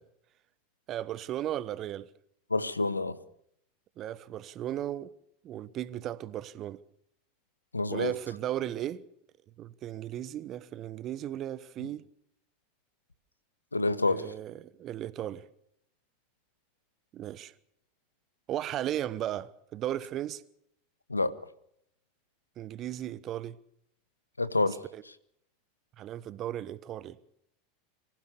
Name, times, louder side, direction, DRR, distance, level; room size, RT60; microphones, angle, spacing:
voice 1, 0.9-2.1 4.0-5.1 5.4-6.8 7.9-9.0 9.6-12.0 14.1-15.5 17.1-17.5 18.5-20.4 22.6-23.6 24.6-25.0 26.0-27.2, right 12 dB, 40° right, 1.1 m, -36 dB
voice 2, 2.5-3.2 7.7-8.1 13.7-14.2 21.1-21.3 24.4-24.8, left 2 dB, 90° left, 1.0 m, -27 dB
24.5 x 15.5 x 6.9 m
figure-of-eight pair, 85°, 0 cm